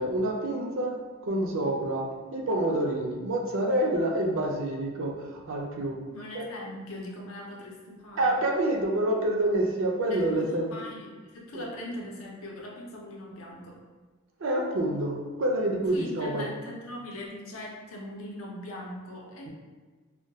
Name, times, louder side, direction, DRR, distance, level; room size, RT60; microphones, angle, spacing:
voice 1, 0.0-6.0 6.3-6.5 8.2-10.7 11.5-11.7 14.4-16.5, right 1 dB, 65° right, 0 dB, 0.4 m, -27 dB
voice 2, 6.1-8.3 10.1-13.8 15.9-19.5, left 1 dB, 75° left, -1 dB, 0.6 m, -41 dB
2.2 x 2.1 x 3.9 m, 1.4 s
head